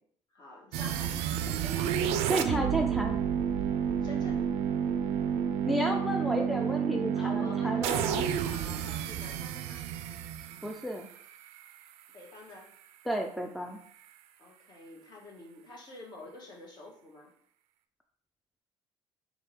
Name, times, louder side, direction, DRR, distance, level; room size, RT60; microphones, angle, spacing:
voice 1, 0.3-1.9 3.7-4.5 7.1-9.8 12.1-12.7 14.4-17.3, left 2 dB, 45° left, -2 dB, 1.4 m, -48 dB
sound 1, 0.7-11.7, right 8 dB, 85° right, 0.4 m, -30 dB
voice 2, 2.3-3.2 5.7-8.3 10.6-11.1 13.1-13.8, right 1 dB, ahead, 2 dB, 0.4 m, -32 dB
3.6 x 2.9 x 4.4 m, 0.64 s
cardioid pair, 120°, 10 cm